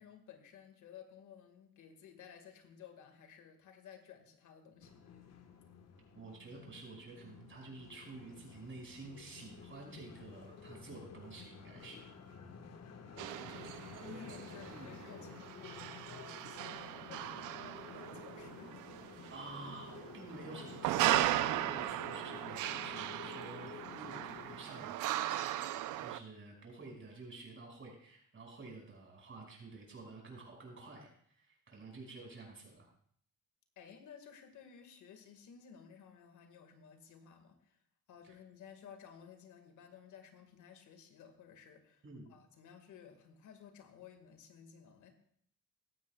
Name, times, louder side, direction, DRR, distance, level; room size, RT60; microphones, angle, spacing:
voice 1, 0.0-4.9 13.1-18.7 33.8-37.8 38.1-42.0 42.3-45.2, left 7 dB, 75° left, 6 dB, 1.8 m, -55 dB
sound 1, 4.8-24.6, left 5 dB, 55° left, 1.4 m, -52 dB
voice 2, 6.1-12.1 14.6-15.0 19.3-25.0 25.9-32.9 38.2-38.4 42.0-42.3, right 3 dB, 40° right, -1 dB, 5.6 m, -50 dB
sound 2, 13.2-26.2, right 13 dB, 85° right, 0.6 m, -38 dB
16.5 x 13.0 x 2.3 m, 0.63 s
cardioid pair, 90°, 30 cm